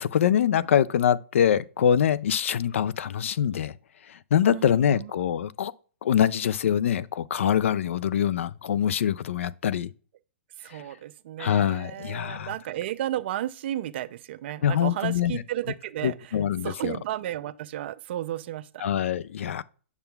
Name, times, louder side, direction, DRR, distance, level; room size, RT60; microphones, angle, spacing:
voice 1, 0.0-3.7 4.1-5.7 6.0-9.9 11.4-12.5 14.6-15.4 16.0-16.9 18.8-19.6, left 9 dB, 70° left, 0.3 m, -24 dB
voice 2, 4.4-5.1 10.6-16.4 16.6-18.9, right 13 dB, 55° right, 0.4 m, -33 dB
7.0 x 6.7 x 2.3 m
hypercardioid pair, 135°, 7 cm